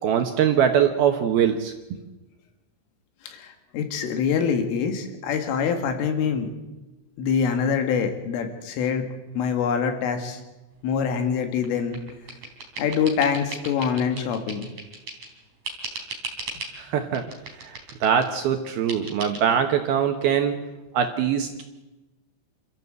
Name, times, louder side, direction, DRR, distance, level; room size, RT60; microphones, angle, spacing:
voice 1, 0.0-2.0 16.8-17.3 17.6-20.6 20.9-21.6, right 8 dB, 70° right, 6 dB, 2.5 m, -23 dB
voice 2, 3.2-6.5 7.2-9.1 9.4-10.4 10.8-12.0 12.8-14.7, left 6 dB, 85° left, 6 dB, 4.6 m, -25 dB
sound 1, 11.6-15.3 15.6-16.8 17.1-18.3 18.9-19.4, right 3 dB, 40° right, 4.6 m, -37 dB
27.5 x 14.0 x 8.1 m, 1.1 s
omnidirectional pair, 5.6 m